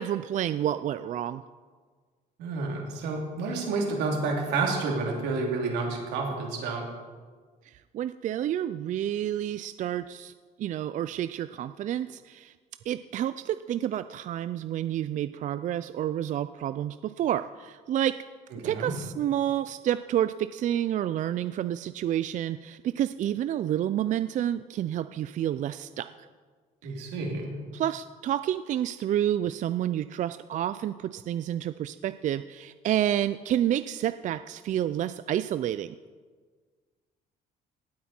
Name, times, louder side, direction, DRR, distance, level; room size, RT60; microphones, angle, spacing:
voice 1, 0.0-1.4 7.7-10.3 10.6-12.5 12.9-18.1 18.6-26.3 26.8-27.0 27.7-36.0, right 11 dB, 50° right, 12 dB, 0.4 m, -29 dB
voice 2, 2.4-6.9 18.6-18.9 26.8-27.5, right 3 dB, 85° right, 0 dB, 3.1 m, -30 dB
18.0 x 8.5 x 4.4 m, 1.5 s
cardioid pair, 110°, 17 cm